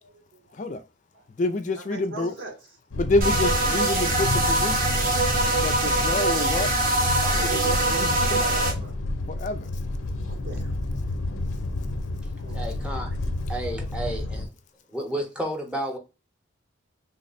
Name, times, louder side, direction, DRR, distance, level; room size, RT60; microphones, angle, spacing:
voice 1, 0.0-0.4 1.9-2.5 7.2-8.1 8.4-8.9 10.3-10.7 12.4-13.0, right 2 dB, 70° right, 1.0 m, -38 dB
voice 2, 0.5-0.8 1.4-2.3 3.0-4.7 5.6-7.0 7.3-8.4 9.3-9.7, left 2 dB, 40° left, 0.4 m, -28 dB
sound 1, 2.9-14.5, left 2 dB, 90° left, 0.6 m, -30 dB
sound 2, 3.2-8.7, right 2 dB, 45° right, 0.7 m, -23 dB
voice 3, 12.5-13.1 13.5-14.5 14.9-16.0, right 1 dB, 5° right, 0.8 m, -31 dB
3.4 x 2.1 x 3.9 m
head